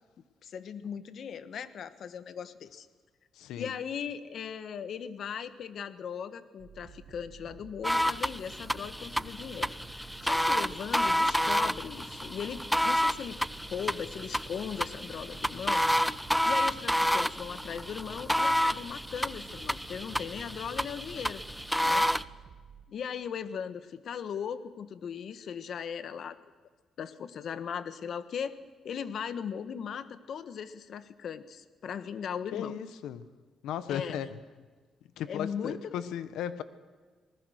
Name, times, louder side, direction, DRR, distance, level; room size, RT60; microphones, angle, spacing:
voice 1, 0.4-2.9 3.6-9.8 10.0-13.4 13.7-15.8 16.1-16.2 16.4-21.4 21.8-22.1 22.9-26.4 27.0-28.5 28.8-32.7 33.9-34.2 35.3-36.0, left 7 dB, 60° left, 12 dB, 1.4 m, -38 dB
voice 2, 3.3-3.7 32.5-33.3 33.6-34.3 35.2-36.6, left 10 dB, 85° left, 13 dB, 1.3 m, -36 dB
sound 1, 6.6-22.8, right 7 dB, 60° right, 1.8 m, -52 dB
sound 2, 7.8-22.2, equal, ahead, 0.6 m, -30 dB
26.5 x 20.0 x 6.6 m, 1.4 s
cardioid pair, 90°, 0 cm